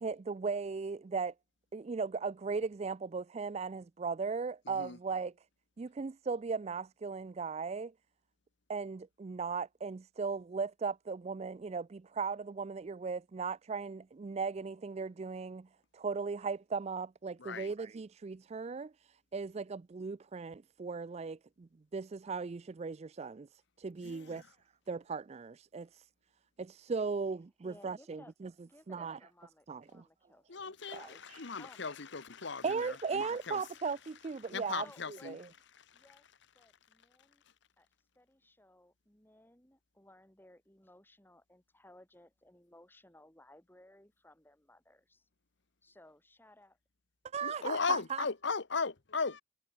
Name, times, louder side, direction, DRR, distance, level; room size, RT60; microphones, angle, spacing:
voice 1, 0.0-1.3 1.7-5.3 5.8-7.9 8.7-15.7 15.9-18.9 19.3-23.5 23.8-24.4 24.9-26.0 26.6-28.5 28.9-29.2 29.7-30.1 30.9-31.0 32.6-34.9 35.2-35.4 47.3-48.2, right 5 dB, 30° right, 0.4 m, -37 dB
voice 2, 4.7-5.0 17.4-17.7 24.0-24.4 30.5-33.6 34.4-35.4 35.9-36.0 47.4-49.4, left 4 dB, 60° left, 1.1 m, -37 dB
voice 3, 27.6-28.3 28.6-31.2 31.6-32.0 32.5-32.9 34.7-35.4 35.9-36.3 36.6-37.4 37.8-37.9 38.2-45.3 45.8-46.7, left 1 dB, 10° left, 3.4 m, -60 dB
head